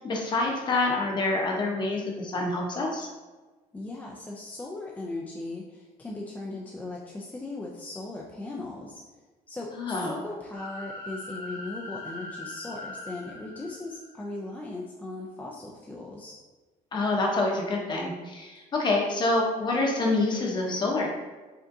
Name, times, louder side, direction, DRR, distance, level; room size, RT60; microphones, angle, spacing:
voice 1, 0.0-3.1 9.7-10.2 16.9-21.1, left 2 dB, 30° left, 0 dB, 0.8 m, -27 dB
voice 2, 3.7-9.0 9.5-16.4, left 2 dB, 10° left, -3 dB, 0.3 m, -38 dB
sound 1, 10.5-14.3, left 2 dB, 60° left, 1.1 m, -41 dB
5.1 x 3.6 x 2.6 m, 1.3 s
cardioid pair, 170°, 15 cm